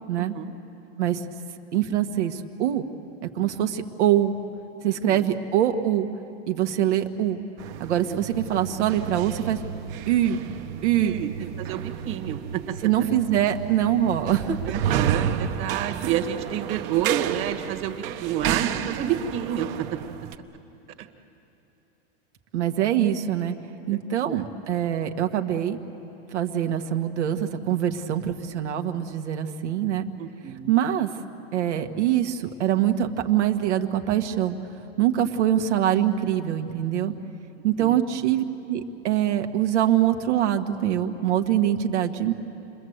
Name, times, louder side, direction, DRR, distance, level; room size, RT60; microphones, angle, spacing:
voice 1, 0.2-0.5 5.1-5.3 6.8-6.9 8.1-8.2 11.0-12.8 14.6-20.0 21.0-21.1 23.9-24.4 30.2-30.8 37.8-38.0, right 10 dB, 35° right, 5 dB, 1.6 m, -30 dB
voice 2, 1.7-2.9 3.2-4.3 4.8-6.1 6.5-7.4 7.8-9.6 10.1-10.4 10.8-11.1 12.8-14.7 22.5-23.5 23.9-25.8 26.3-30.1 30.7-31.1 31.5-34.6 35.0-37.1 37.6-42.3, right 11 dB, 85° right, 6 dB, 1.6 m, -24 dB
sound 1, 7.6-20.4, right 9 dB, 55° right, 1.2 m, -31 dB
29.0 x 21.0 x 8.0 m, 2.9 s
supercardioid pair, 135°, 34 cm